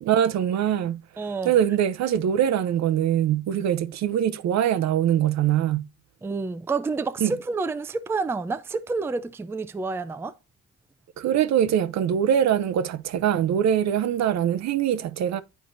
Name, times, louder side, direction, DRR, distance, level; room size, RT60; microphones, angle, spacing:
voice 1, 0.0-1.0 1.4-5.9 7.2-7.3 11.2-15.4, right 10 dB, 65° right, 0.6 m, -23 dB
voice 2, 1.2-1.5 6.2-10.3, right 4 dB, 10° right, 0.4 m, -29 dB
9.2 x 4.5 x 2.5 m
cardioid pair, 90°, 30 cm